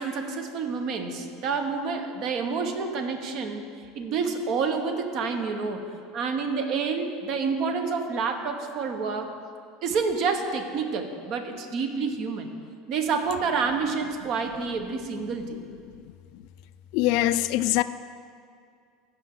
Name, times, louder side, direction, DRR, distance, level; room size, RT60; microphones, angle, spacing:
voice 1, 0.0-3.6 3.9-5.8 6.1-9.3 9.8-12.5 12.9-15.6, right 5 dB, 55° right, 6 dB, 1.2 m, -28 dB
voice 2, 16.9-17.8, left 15 dB, 65° left, 13 dB, 0.4 m, -22 dB
16.0 x 6.1 x 3.9 m, 2.2 s
supercardioid pair, 100°, 0 cm